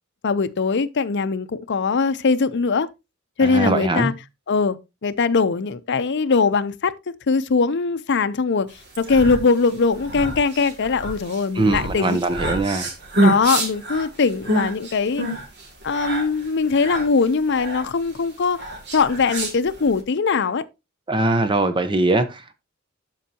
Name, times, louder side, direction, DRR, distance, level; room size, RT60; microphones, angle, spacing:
voice 1, 0.2-2.9 3.4-4.1 4.5-6.9 7.3-8.7 9.0-12.2 13.2-15.3 15.8-18.6 18.9-20.6, left 4 dB, 60° left, 0.6 m, -21 dB
voice 2, 3.4-4.1 11.5-12.9 21.1-22.5, right 2 dB, 25° right, 0.8 m, -21 dB
sound 1, 8.8-20.0, right 1 dB, 55° right, 2.3 m, -27 dB
12.5 x 4.6 x 2.8 m
head